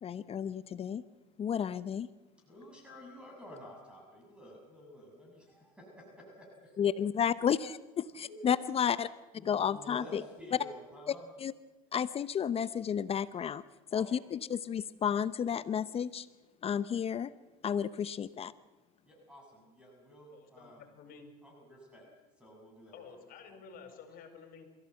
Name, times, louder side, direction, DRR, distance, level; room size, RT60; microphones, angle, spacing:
voice 1, 0.0-1.0 1.4-2.1 6.8-9.1 9.4-10.2 11.1-11.5 11.9-13.6 13.9-16.3 16.6-17.3 17.6-18.5, left 8 dB, 30° left, 15 dB, 0.8 m, -32 dB
voice 2, 2.4-6.7 8.2-8.4 9.4-11.3 13.9-14.2 19.0-20.9 21.4-22.0 22.4-23.1, equal, 5° right, -1 dB, 6.6 m, -51 dB
voice 3, 20.3-21.3 22.9-24.7, left 5 dB, 50° left, 7 dB, 5.2 m, -51 dB
28.0 x 15.5 x 7.8 m, 1.2 s
supercardioid pair, 100°, 19 cm